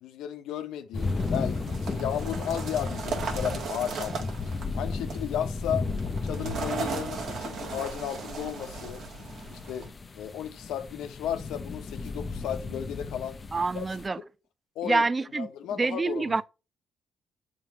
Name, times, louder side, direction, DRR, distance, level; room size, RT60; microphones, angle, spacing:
voice 1, 0.0-5.9 6.2-9.0 9.5-9.9 10.1-13.4 13.7-13.9 14.2-14.3 14.7-15.1 15.3-16.4, left 10 dB, 85° left, 0.9 m, -34 dB
sound 1, 0.9-14.1, left 3 dB, 35° left, 0.7 m, -35 dB
sound 2, 1.0-9.9, right 5 dB, 65° right, 1.6 m, -37 dB
voice 2, 13.5-14.2 14.8-15.5 15.8-16.4, right 3 dB, 25° right, 0.4 m, -26 dB
7.3 x 5.8 x 2.9 m
cardioid pair, 90°, 0 cm